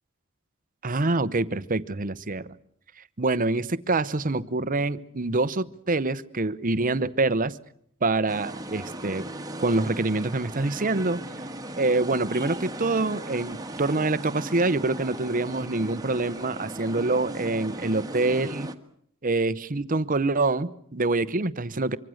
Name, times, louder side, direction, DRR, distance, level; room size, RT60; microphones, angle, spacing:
voice 1, 0.8-2.5 3.2-7.6 8.0-9.3 9.6-11.2 11.8-18.7 19.2-22.0, right 2 dB, 40° right, 0.9 m, -26 dB
sound 1, 8.3-18.8, right 1 dB, 20° right, 1.6 m, -37 dB
25.0 x 24.5 x 6.5 m
head